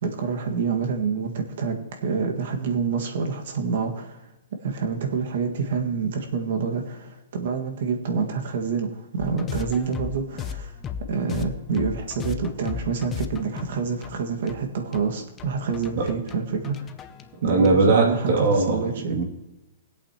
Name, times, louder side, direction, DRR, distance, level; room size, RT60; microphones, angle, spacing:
voice 1, 0.0-4.2 4.6-10.7 11.1-16.8 17.4-19.2, right 5 dB, 65° right, 3 dB, 1.9 m, -27 dB
sound 1, 9.2-17.9, left 8 dB, 15° left, 0.6 m, -36 dB
voice 2, 17.4-18.8 19.1-19.2, right 3 dB, 45° right, 0 dB, 2.6 m, -20 dB
21.0 x 8.4 x 3.0 m, 1.0 s
hypercardioid pair, 160°, 0 cm